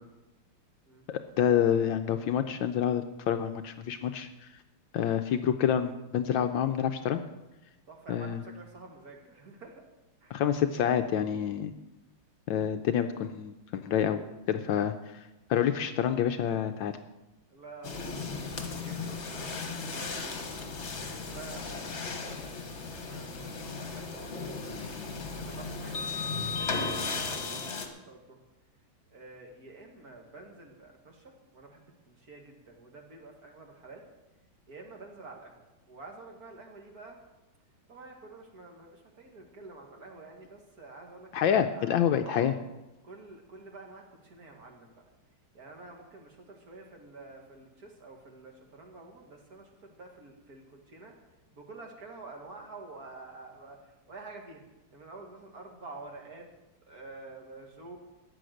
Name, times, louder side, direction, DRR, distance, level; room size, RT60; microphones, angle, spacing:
voice 1, 1.1-4.3 4.9-7.2 8.1-8.4 10.3-11.7 12.5-15.2 15.5-16.9 41.3-42.5, left 9 dB, 75° left, 8 dB, 1.3 m, -28 dB
voice 2, 7.9-9.9 10.2-10.4 13.9-14.4 17.5-20.4 20.9-24.8 25.3-28.4 29.1-34.0 34.7-37.2 37.9-41.3 41.6-42.5 43.0-45.0 45.5-51.1 51.5-54.6 54.9-56.5 56.9-58.0, right 3 dB, 45° right, 2 dB, 2.3 m, -49 dB
sound 1, 17.8-27.9, left 4 dB, 35° left, 1.4 m, -36 dB
14.0 x 9.3 x 6.5 m, 1.0 s
omnidirectional pair, 2.4 m